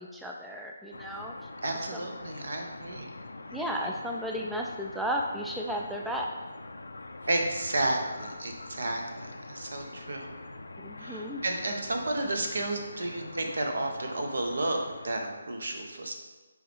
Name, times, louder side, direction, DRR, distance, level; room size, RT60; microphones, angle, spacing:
voice 1, 0.0-1.3 1.9-2.0 3.5-6.3 10.8-11.4, equal, 5° right, -1 dB, 0.3 m, -34 dB
sound 1, 0.9-15.1, left 2 dB, 70° left, 0.5 m, -44 dB
voice 2, 1.6-3.1 3.8-3.9 7.3-10.3 11.0-14.8 15.0-16.1, right 2 dB, 65° right, 3 dB, 1.0 m, -32 dB
9.4 x 3.2 x 3.5 m, 1.2 s
figure-of-eight pair, 145°, 0 cm